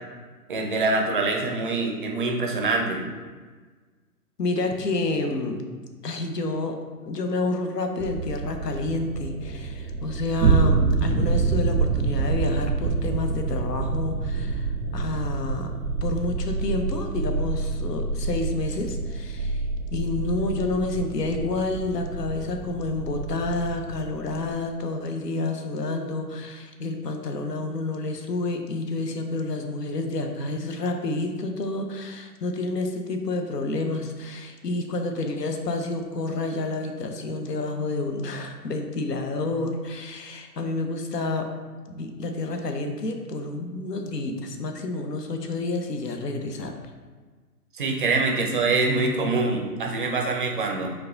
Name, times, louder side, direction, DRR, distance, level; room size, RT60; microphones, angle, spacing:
voice 1, 0.5-3.0 47.7-50.9, right 3 dB, 35° right, 1 dB, 0.5 m, -24 dB
voice 2, 4.4-5.6 6.0-15.7 16.0-41.5 41.9-46.8, left 2 dB, 80° left, 5 dB, 0.8 m, -29 dB
sound 1, 8.0-24.5, right 4 dB, 80° right, 0.6 m, -27 dB
4.7 x 2.3 x 3.8 m, 1.4 s
figure-of-eight pair, 135°, 48 cm